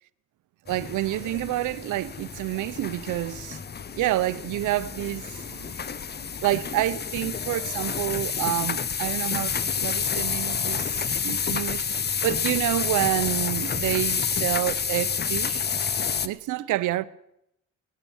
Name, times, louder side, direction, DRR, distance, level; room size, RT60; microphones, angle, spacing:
sound 1, 0.7-16.3, left 6 dB, 35° left, 0.8 m, -29 dB
voice 1, 0.7-3.6 4.0-5.7 6.4-15.6 16.2-17.0, right 15 dB, 85° right, 0.7 m, -28 dB
19.5 x 10.0 x 7.2 m
cardioid pair, 90°, 30 cm